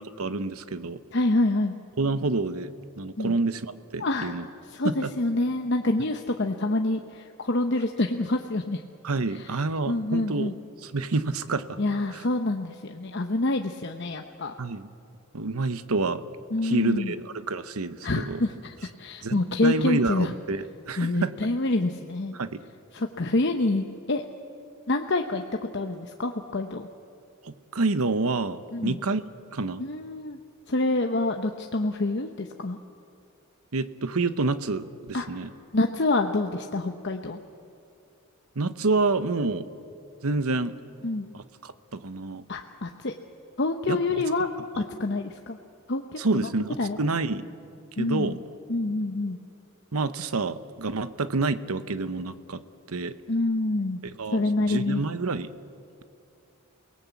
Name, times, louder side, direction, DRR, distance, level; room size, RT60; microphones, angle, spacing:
voice 1, 0.2-1.0 2.0-4.5 4.8-5.1 9.0-10.5 10.8-11.8 12.1-12.2 14.6-14.9 15.3-16.2 16.6-18.4 19.2-21.3 22.3-22.6 27.4-29.2 29.5-29.8 33.7-35.5 38.6-39.7 40.2-40.8 41.3-42.4 43.9-44.0 46.2-47.5 48.0-48.4 49.9-52.6 52.9-53.1 54.2-55.5, right 3 dB, 75° right, 13 dB, 1.0 m, -28 dB
voice 2, 1.1-1.7 3.2-3.4 4.0-4.4 4.7-8.8 9.3-9.5 9.9-10.5 11.8-14.5 16.5-17.1 18.0-20.3 21.0-22.4 22.9-24.3 24.9-25.4 25.7-26.9 28.7-29.0 29.8-30.4 30.7-32.8 35.1-35.3 35.7-37.4 41.0-41.3 42.5-43.1 43.6-44.5 44.8-45.6 45.9-46.5 46.8-47.0 48.0-48.4 48.7-49.4 53.3-54.0 54.3-55.0, left 2 dB, 50° left, 4 dB, 0.9 m, -27 dB
28.5 x 18.5 x 8.4 m, 2.5 s
head